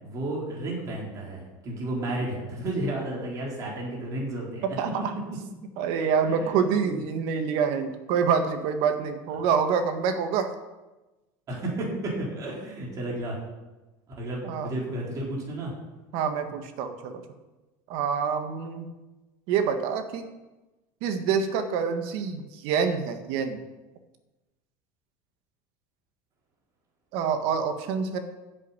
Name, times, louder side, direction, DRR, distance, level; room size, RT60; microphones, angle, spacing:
voice 1, 0.0-4.8 5.3-5.4 6.3-7.0 11.5-13.4 14.2-15.7, right 1 dB, 35° right, -3 dB, 4.4 m, -32 dB
voice 2, 4.6-5.0 5.8-10.5 14.4-14.7 16.1-17.2 17.9-18.9 19.5-20.2 21.0-23.6 27.1-28.2, right 6 dB, 65° right, 7 dB, 1.7 m, -26 dB
11.0 x 8.1 x 8.9 m, 1.1 s
supercardioid pair, 140°, 10 cm